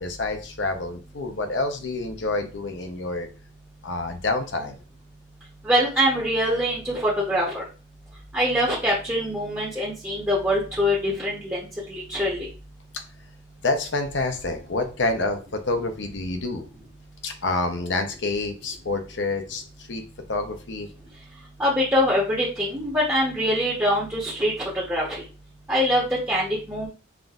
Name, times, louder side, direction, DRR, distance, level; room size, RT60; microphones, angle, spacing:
voice 1, 0.0-3.3 3.8-4.7 13.6-16.6 17.2-19.6 19.9-20.0 20.3-20.9, left 2 dB, 60° left, 5 dB, 0.6 m, -27 dB
voice 2, 5.6-7.6 8.3-12.5 21.6-25.2 25.7-26.9, equal, 10° right, -6 dB, 0.8 m, -24 dB
5.8 x 2.6 x 2.4 m, 0.35 s
head